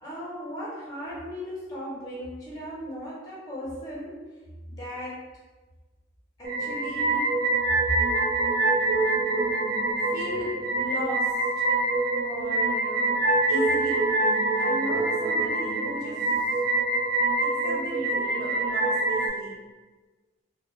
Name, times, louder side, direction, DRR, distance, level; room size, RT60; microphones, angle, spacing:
voice 1, 0.0-4.2 4.7-5.3 6.4-7.3 9.2-9.6 10.0-11.7 12.2-13.2 13.5-16.3 17.4-19.6, equal, 20° left, -7 dB, 0.6 m, -37 dB
sound 1, 6.4-19.3, right 2 dB, 45° right, 0.3 m, -25 dB
2.1 x 2.0 x 3.0 m, 1.2 s
head